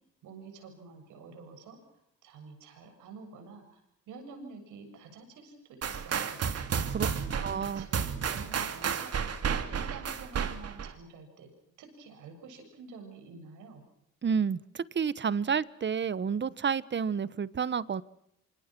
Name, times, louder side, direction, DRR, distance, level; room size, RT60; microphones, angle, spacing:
voice 1, 0.2-1.8 2.2-3.8 4.1-6.4 7.1-11.5 11.8-13.8, right 4 dB, 90° right, 5 dB, 7.4 m, -49 dB
sound 1, 5.8-10.9, right 7 dB, 55° right, 2.7 m, -32 dB
voice 2, 7.4-7.9 14.2-18.0, right 6 dB, 35° right, 18 dB, 1.1 m, -30 dB
26.5 x 26.0 x 6.1 m, 0.76 s
cardioid pair, 90°, 30 cm